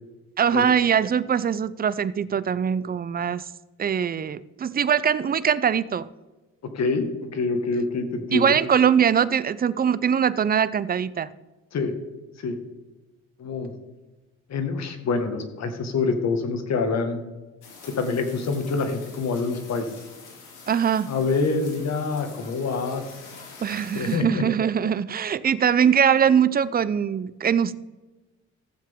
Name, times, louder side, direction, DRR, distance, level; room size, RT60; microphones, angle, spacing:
voice 1, 0.4-3.5 3.8-6.1 8.3-11.3 20.7-21.1 23.6-27.8, right 8 dB, 30° right, 0.5 m, -22 dB
voice 2, 6.7-8.6 11.7-11.9 12.4-12.6 13.4-13.7 14.5-17.2 17.9-19.9 21.1-23.0 23.7-24.4, left 4 dB, 60° left, 1.8 m, -26 dB
sound 1, 17.6-24.2, left 4 dB, 90° left, 2.8 m, -45 dB
15.0 x 7.6 x 3.7 m
cardioid pair, 90°, 30 cm